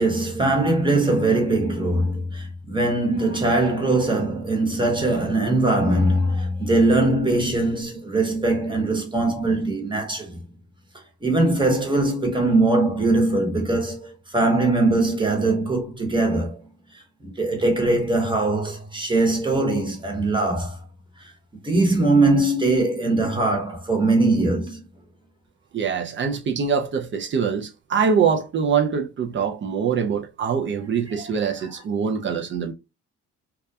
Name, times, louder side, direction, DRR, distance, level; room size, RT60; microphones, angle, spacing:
voice 1, 0.0-10.4 11.2-16.6 17.2-20.8 21.6-24.8 31.2-31.3 31.6-31.7, right 2 dB, 15° right, 0.9 m, -21 dB
voice 2, 25.7-32.7, right 6 dB, 40° right, 0.4 m, -24 dB
2.3 x 2.1 x 2.6 m
cardioid pair, 90°, 30 cm